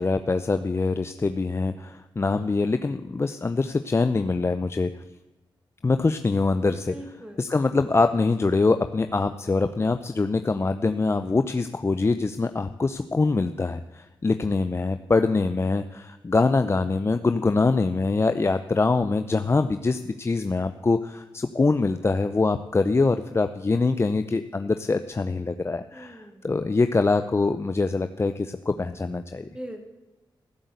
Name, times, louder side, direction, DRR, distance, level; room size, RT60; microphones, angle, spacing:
voice 1, 0.0-4.9 5.8-29.5, left 3 dB, 30° left, 9 dB, 0.6 m, -24 dB
voice 2, 6.9-7.4 25.9-26.4 29.4-29.8, right 1 dB, 10° right, 4 dB, 2.8 m, -40 dB
14.5 x 8.0 x 8.1 m, 1.1 s
cardioid pair, 85°, 9 cm